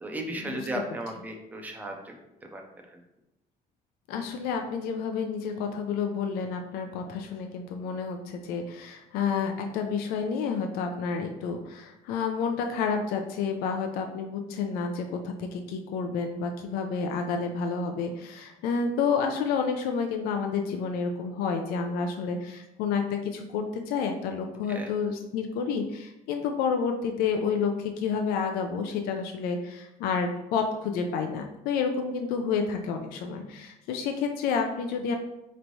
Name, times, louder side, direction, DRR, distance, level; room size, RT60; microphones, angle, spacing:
voice 1, 0.0-2.1 2.5-2.6 2.9-3.0 24.7-24.9, right 1 dB, 10° right, 2 dB, 0.5 m, -35 dB
voice 2, 4.1-35.1, left 5 dB, 85° left, 4 dB, 0.4 m, -30 dB
4.4 x 3.1 x 2.6 m, 0.92 s
cardioid pair, 170°, 15 cm